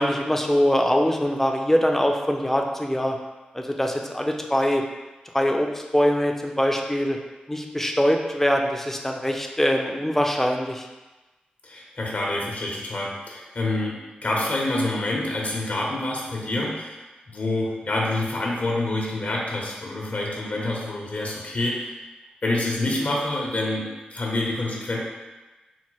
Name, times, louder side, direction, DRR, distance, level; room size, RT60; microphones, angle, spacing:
voice 1, 0.0-3.2 3.5-4.8 5.3-7.2 7.5-10.8, equal, 10° left, 2 dB, 0.5 m, -23 dB
voice 2, 11.6-17.0 17.3-21.9 22.4-25.0, left 2 dB, 55° left, -2 dB, 0.8 m, -27 dB
4.1 x 2.1 x 4.5 m, 1.1 s
cardioid pair, 60°, 3 cm